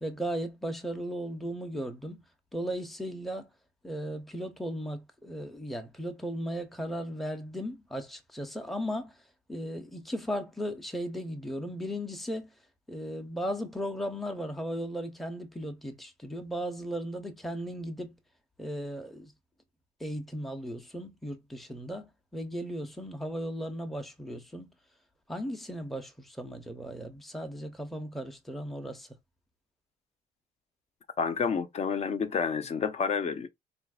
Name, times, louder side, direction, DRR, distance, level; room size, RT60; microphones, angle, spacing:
voice 1, 0.0-2.2 2.5-3.5 3.8-9.1 9.5-12.5 12.9-18.2 18.6-19.3 20.0-24.7 25.3-29.1, equal, ahead, 0.7 m, -36 dB
voice 2, 31.2-33.5, left 6 dB, 40° left, 0.7 m, -29 dB
4.1 x 2.5 x 2.3 m
cardioid pair, 110°, 17 cm